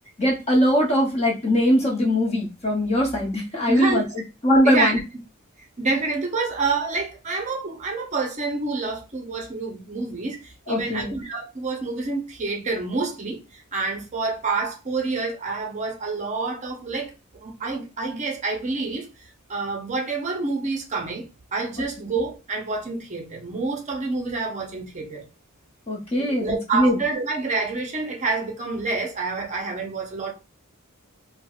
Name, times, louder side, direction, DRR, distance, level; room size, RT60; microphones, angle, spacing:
voice 1, 0.2-4.0 4.4-5.0 10.7-11.2 25.9-27.0, equal, 30° left, 0.7 m, -21 dB
voice 2, 3.7-4.0 4.6-4.9 5.8-19.1 19.5-25.2 26.2-30.3, right 3 dB, 35° right, 0.6 m, -28 dB
4.4 x 2.1 x 2.4 m
head